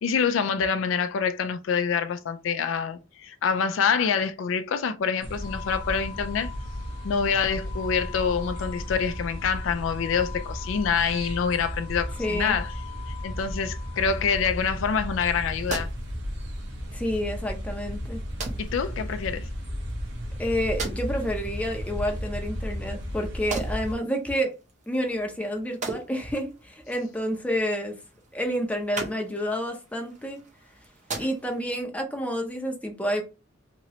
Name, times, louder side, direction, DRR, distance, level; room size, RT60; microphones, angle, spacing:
voice 1, 0.0-6.5 7.0-12.7 13.2-15.9 18.6-19.5, left 6 dB, 70° left, 0.4 m, -26 dB
sound 1, 5.2-23.9, equal, 60° right, 1.0 m, -34 dB
sound 2, 5.4-14.5, left 11 dB, 50° left, 1.0 m, -45 dB
voice 2, 12.2-12.6 16.9-18.2 20.4-24.5 24.9-28.0 28.3-30.4 31.2-33.2, equal, 5° left, 0.6 m, -29 dB
sound 3, 15.2-31.8, right 3 dB, 40° right, 0.8 m, -41 dB
2.9 x 2.9 x 2.9 m
head